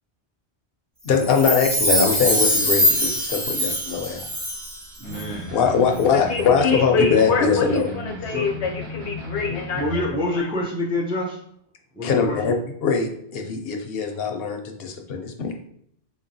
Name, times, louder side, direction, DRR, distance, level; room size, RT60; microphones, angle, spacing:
voice 1, 1.0-4.3 5.5-7.9 12.0-12.5 12.8-15.5, left 6 dB, 65° left, 3 dB, 0.8 m, -22 dB
Chime, 1.2-4.8 5.1-5.2, equal, 25° right, 1.0 m, -22 dB
voice 2, 5.0-5.7 8.3-8.5 9.5-11.4 11.9-12.5, left 1 dB, 5° right, -1 dB, 0.4 m, -27 dB
sound 1, 5.0-10.1, left 1 dB, 85° right, 1.1 m, -35 dB
voice 3, 6.1-10.0 10.3-10.5, left 5 dB, 85° left, 2 dB, 1.0 m, -25 dB
4.1 x 2.9 x 2.6 m, 0.68 s
omnidirectional pair, 1.1 m